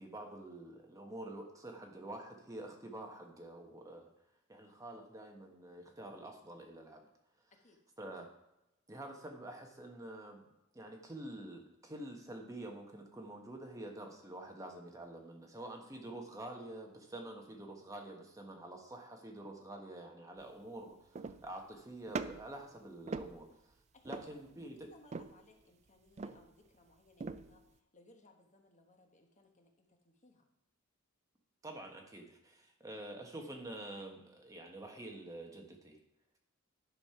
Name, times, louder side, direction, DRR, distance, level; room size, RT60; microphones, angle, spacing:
voice 1, 0.0-4.1 4.5-7.1 7.4-7.5 8.0-8.3 8.9-10.5 10.7-23.8 24.0-24.9 31.6-36.0, right 1 dB, 15° right, 2 dB, 1.2 m, -47 dB
sound 1, 20.4-20.5 21.1-21.6 22.1-22.6 23.1-23.7 24.0-24.5 25.1-25.5 26.2-26.7 27.2-27.6, right 4 dB, 35° right, 0.4 m, -42 dB
voice 2, 24.9-30.5, left 2 dB, 35° left, 3 dB, 1.1 m, -64 dB
10.5 x 5.4 x 5.7 m, 0.89 s
head